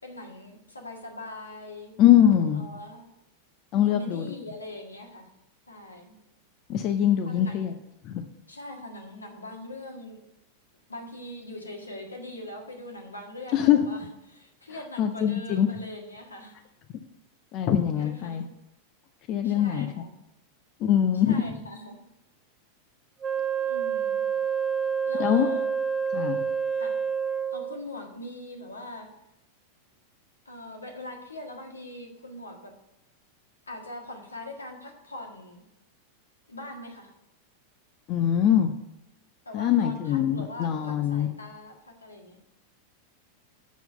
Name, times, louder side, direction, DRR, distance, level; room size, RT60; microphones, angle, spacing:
voice 1, 0.0-2.0 2.6-3.1 3.9-5.3 5.7-6.2 7.2-7.6 8.5-10.2 10.9-16.6 18.0-18.5 19.4-20.1 21.2-22.0 23.6-24.2 25.0-25.7 26.8-27.0 27.5-29.1 30.5-32.7 33.7-35.6 36.5-37.1 39.4-42.4, left 1 dB, 80° left, 2 dB, 1.7 m, -42 dB
voice 2, 2.0-2.7 3.7-4.3 6.7-7.7 8.0-8.2 13.5-13.8 15.0-15.7 17.5-18.4 19.3-19.9 20.8-21.4 25.2-25.5 26.1-26.4 38.1-38.7 39.5-41.3, left 10 dB, 40° left, 6 dB, 0.7 m, -22 dB
Wind instrument woodwind instrument, 23.2-27.8, right 6 dB, 20° right, 0.5 m, -28 dB
7.3 x 6.0 x 6.8 m, 0.90 s
figure-of-eight pair, 90°, 0 cm